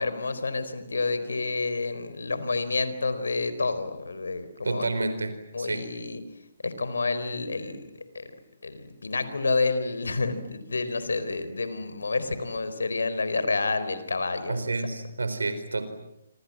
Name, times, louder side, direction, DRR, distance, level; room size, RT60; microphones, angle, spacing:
voice 1, 0.0-4.9 5.5-6.2 6.6-7.8 8.1-8.3 8.6-14.7, left 3 dB, 80° left, 12 dB, 4.3 m, -29 dB
voice 2, 4.6-5.9 14.5-15.9, right 3 dB, 85° right, 10 dB, 4.6 m, -30 dB
28.0 x 26.0 x 7.6 m, 0.82 s
hypercardioid pair, 140°, 0 cm